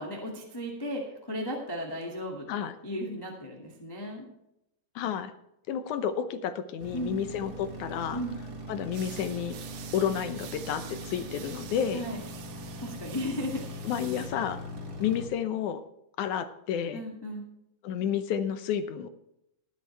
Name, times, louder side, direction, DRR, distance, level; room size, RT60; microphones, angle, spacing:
voice 1, 0.0-2.5 2.8-4.3 6.9-7.2 8.1-8.4 11.9-12.2 12.8-13.6 16.9-17.4, equal, 10° left, -1 dB, 1.4 m, -35 dB
voice 2, 5.0-5.3 5.7-8.2 8.7-9.6 9.9-12.0 13.8-14.6 15.0-15.8 16.2-17.0 17.8-19.1, left 8 dB, 70° left, 10 dB, 2.1 m, -31 dB
sound 1, 6.8-15.3, equal, 30° right, 2.1 m, -41 dB
sound 2, 8.9-14.3, right 8 dB, 90° right, 3.1 m, -47 dB
20.0 x 8.4 x 3.3 m, 0.82 s
omnidirectional pair, 3.9 m